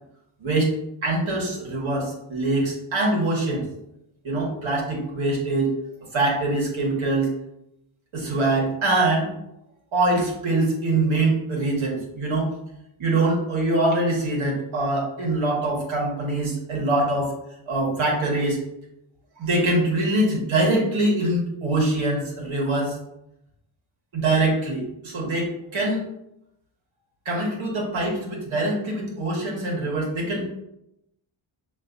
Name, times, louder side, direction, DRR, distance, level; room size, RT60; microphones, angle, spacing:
voice 1, 0.4-0.7 1.0-3.6 4.2-5.7 6.1-7.3 8.1-9.3 9.9-12.5 13.0-17.3 17.7-18.6 19.4-22.9 24.1-26.0 27.2-30.5, right 2 dB, 70° right, -2 dB, 1.6 m, -23 dB
5.8 x 3.1 x 2.6 m, 0.82 s
cardioid pair, 95°, 50 cm